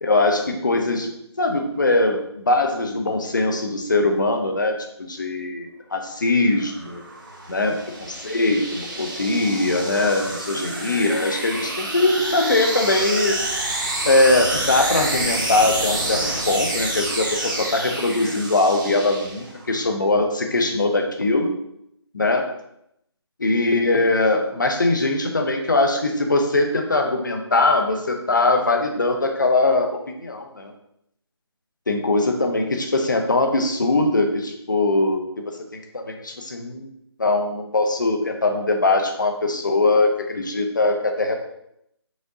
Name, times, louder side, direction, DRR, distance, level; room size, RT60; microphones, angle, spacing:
voice 1, 0.0-1.1 1.4-7.0 7.5-13.4 14.0-21.5 22.1-22.5 23.4-30.7 31.9-35.2 35.9-36.9 37.2-41.3, left 2 dB, 45° left, 4 dB, 0.6 m, -21 dB
sound 1, 6.3-19.7, right 1 dB, 45° right, 0.8 m, -28 dB
5.0 x 2.6 x 3.7 m, 0.76 s
figure-of-eight pair, 175°, 14 cm